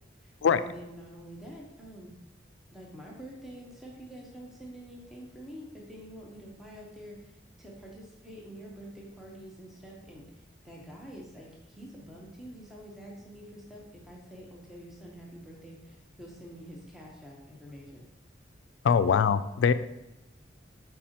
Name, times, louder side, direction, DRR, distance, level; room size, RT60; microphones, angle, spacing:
voice 1, 0.2-2.1 2.7-18.1 19.1-19.2, equal, ahead, -2 dB, 0.9 m, -47 dB
voice 2, 18.8-19.7, left 6 dB, 85° left, 12 dB, 0.3 m, -22 dB
7.2 x 4.8 x 2.9 m, 0.95 s
head